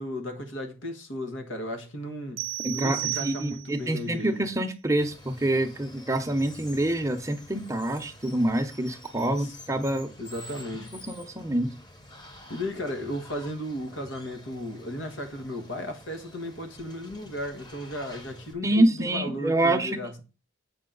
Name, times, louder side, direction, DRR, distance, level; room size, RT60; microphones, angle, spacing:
voice 1, 0.0-4.5 9.2-9.6 10.2-11.1 12.5-20.2, left 1 dB, 90° left, 1.4 m, -35 dB
sound 1, 2.4-3.9, right 20 dB, 85° right, 0.3 m, -33 dB
voice 2, 2.6-10.1 11.0-11.7 18.6-20.2, right 1 dB, 15° right, 0.6 m, -26 dB
Water, 5.0-18.5, left 1 dB, 20° left, 1.0 m, -48 dB
7.6 x 5.6 x 3.8 m
head